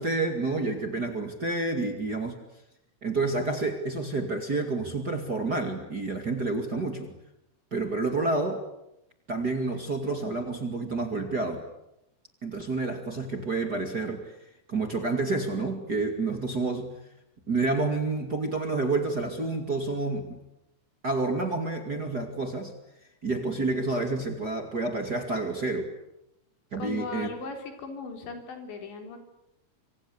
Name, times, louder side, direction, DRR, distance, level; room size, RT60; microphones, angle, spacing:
voice 1, 0.0-2.4 3.0-7.1 7.7-8.7 9.3-11.7 12.4-14.3 14.7-16.9 17.5-20.4 21.0-22.7 23.2-25.9 26.7-27.3, right 3 dB, 30° right, 5 dB, 2.1 m, -29 dB
voice 2, 26.8-29.2, left 4 dB, 90° left, 5 dB, 6.2 m, -38 dB
26.0 x 25.5 x 8.4 m, 0.85 s
omnidirectional pair, 5.0 m